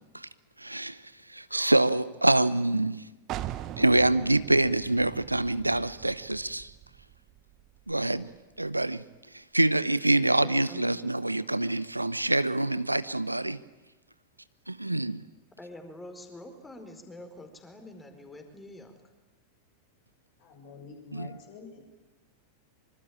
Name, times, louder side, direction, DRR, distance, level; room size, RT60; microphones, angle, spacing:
voice 1, 0.6-1.0 1.3-3.0 3.8-6.7 7.9-8.3 8.6-9.0 9.3-13.6 14.7-15.2 21.1-21.3, right 2 dB, 85° right, 0.9 m, -25 dB
sound 1, 3.3-8.8, right 13 dB, 35° right, 1.5 m, -42 dB
voice 2, 10.4-10.8 15.6-19.0, left 1 dB, 10° left, 4.6 m, -46 dB
voice 3, 20.4-21.9, left 5 dB, 50° left, 7.4 m, -47 dB
25.5 x 25.0 x 8.8 m
figure-of-eight pair, 90°, 0 cm